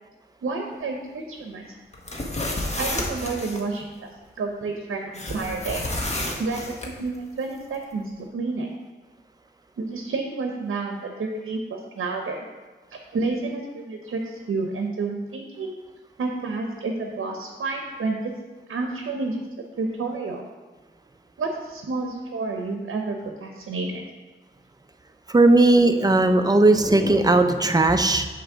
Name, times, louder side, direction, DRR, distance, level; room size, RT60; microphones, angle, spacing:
voice 1, 0.4-1.6 2.8-4.1 4.4-5.8 6.4-8.7 9.8-12.5 12.9-15.8 16.2-18.3 18.7-19.4 19.8-20.5 21.4-24.0, right 3 dB, 90° right, 2 dB, 0.7 m, -30 dB
sound 1, 1.9-3.6 5.1-6.9, left 1 dB, 35° left, 1.1 m, -30 dB
voice 2, 25.3-28.3, right 2 dB, 20° right, 7 dB, 0.5 m, -17 dB
8.0 x 3.1 x 6.0 m, 1.3 s
cardioid pair, 65°, 20 cm